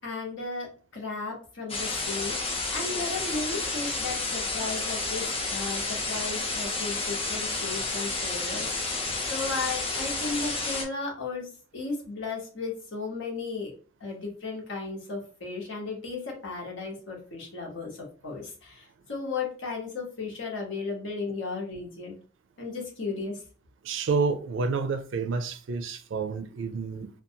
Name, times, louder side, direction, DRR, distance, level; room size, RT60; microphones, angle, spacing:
voice 1, 0.0-11.5 11.7-13.7 14.0-22.2 22.6-23.4, left 4 dB, 80° left, 1.0 m, -35 dB
sound 1, 1.7-10.8, left 3 dB, 30° left, 0.5 m, -31 dB
voice 2, 23.8-27.1, right 4 dB, 75° right, 0.4 m, -29 dB
2.6 x 2.3 x 2.7 m
head